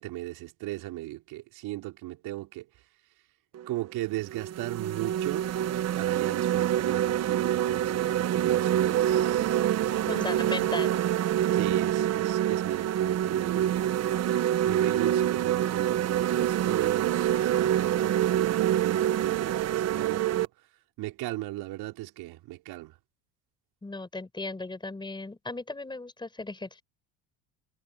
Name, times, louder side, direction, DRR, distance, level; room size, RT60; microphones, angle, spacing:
voice 1, 0.0-2.7 3.7-5.5 6.0-10.7 11.5-14.2 14.6-20.5 21.0-22.9, right 17 dB, 65° right, 5.2 m, -37 dB
sound 1, 3.5-3.7 4.3-20.5, right 11 dB, 40° right, 1.1 m, -26 dB
voice 2, 10.1-10.9 23.8-26.8, left 2 dB, 10° left, 5.0 m, -36 dB
cardioid pair, 125°, 40 cm